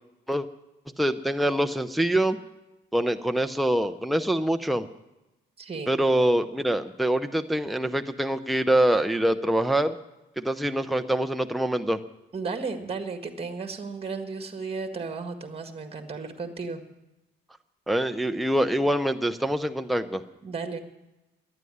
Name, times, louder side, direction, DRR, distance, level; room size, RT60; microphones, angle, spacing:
voice 1, 1.0-2.4 2.9-4.9 5.9-9.9 10.4-12.0 17.9-20.2, right 1 dB, ahead, 7 dB, 0.7 m, -24 dB
voice 2, 5.6-5.9 12.3-16.8 20.4-20.8, right 4 dB, 30° right, 6 dB, 1.8 m, -34 dB
12.0 x 9.5 x 10.0 m, 0.98 s
cardioid pair, 90°, 20 cm